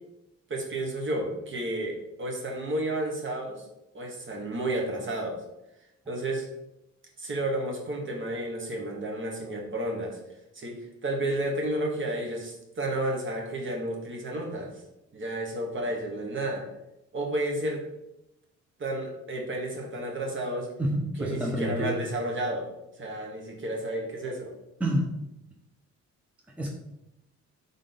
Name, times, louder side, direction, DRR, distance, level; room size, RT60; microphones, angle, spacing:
voice 1, 0.5-3.6 3.9-5.4 6.1-6.5 7.2-10.2 10.5-10.7 11.0-14.7 15.1-16.6 17.1-17.8 18.8-20.7 21.2-22.7 23.0-24.5, right 1 dB, 40° right, 1 dB, 1.3 m, -31 dB
voice 2, 20.8-22.0 24.8-25.1 26.6-26.7, equal, 5° right, 0 dB, 0.6 m, -28 dB
3.7 x 3.7 x 3.8 m, 0.89 s
cardioid pair, 90°, 30 cm